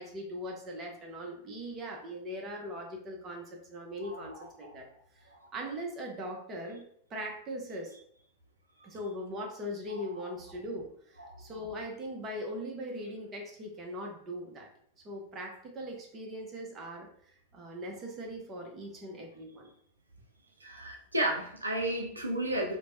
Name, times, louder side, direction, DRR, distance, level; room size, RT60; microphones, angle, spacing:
voice 1, 0.0-5.0 5.5-7.9 8.8-10.9 11.4-14.7 15.0-19.7, equal, 25° right, 1 dB, 0.7 m, -40 dB
voice 2, 9.9-10.2 11.2-11.4 20.6-22.8, right 1 dB, 80° right, 1 dB, 0.4 m, -33 dB
3.2 x 2.0 x 2.5 m, 0.63 s
figure-of-eight pair, 90°, 0 cm